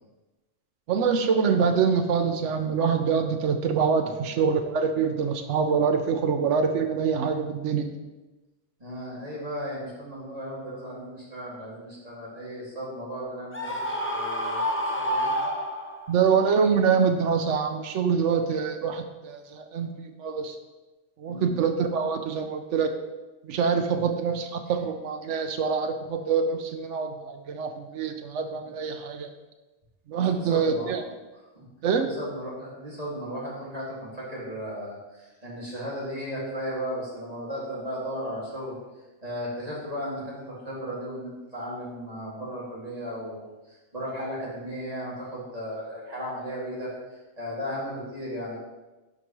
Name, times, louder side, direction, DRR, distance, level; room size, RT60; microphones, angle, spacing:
voice 1, 0.9-7.9 16.1-20.5 21.2-22.9 23.4-29.3 30.1-31.0 31.8-32.1, right 6 dB, 85° right, 5 dB, 1.0 m, -25 dB
voice 2, 8.8-15.4 21.3-21.5 23.9-24.1 28.5-28.6 30.1-30.9 31.5-31.7 32.0-38.8 39.2-48.6, equal, 30° right, -7 dB, 2.5 m, -36 dB
Screaming, 13.5-16.2, equal, 15° left, 0.7 m, -28 dB
11.0 x 4.9 x 3.1 m, 1.1 s
omnidirectional pair, 1.2 m